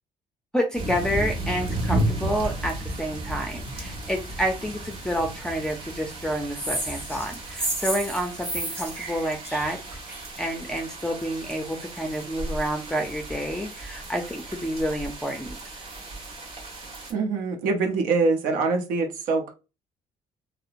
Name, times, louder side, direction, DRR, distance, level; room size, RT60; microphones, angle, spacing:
voice 1, 0.5-9.8 10.1-15.6, equal, 5° left, 3 dB, 0.5 m, -29 dB
sound 1, 0.7-17.1, right 1 dB, 45° right, 1.3 m, -34 dB
sound 2, 6.5-10.4, right 1 dB, 15° right, 1.4 m, -32 dB
voice 2, 17.1-19.5, right 4 dB, 85° right, 4 dB, 0.7 m, -24 dB
2.7 x 2.0 x 2.4 m, 0.29 s
cardioid pair, 85°, 14 cm